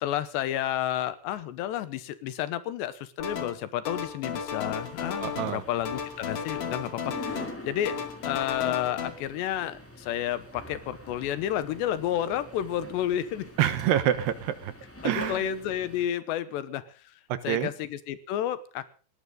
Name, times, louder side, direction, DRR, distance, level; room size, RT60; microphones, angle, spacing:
voice 1, 0.0-8.0 8.2-13.5 15.0-17.0 17.4-18.9, left 11 dB, 75° left, 15 dB, 3.2 m, -31 dB
sound 1, 3.2-3.6 3.8-5.6 5.8-7.6 7.9-9.1, left 6 dB, 45° left, 2.9 m, -34 dB
sound 2, 4.7-16.1, left 1 dB, 5° left, 1.9 m, -45 dB
voice 2, 5.2-5.6 13.6-14.7 15.0-15.4 17.3-17.7, right 11 dB, 70° right, 13 dB, 3.0 m, -26 dB
19.0 x 18.0 x 3.8 m, 0.37 s
omnidirectional pair, 5.2 m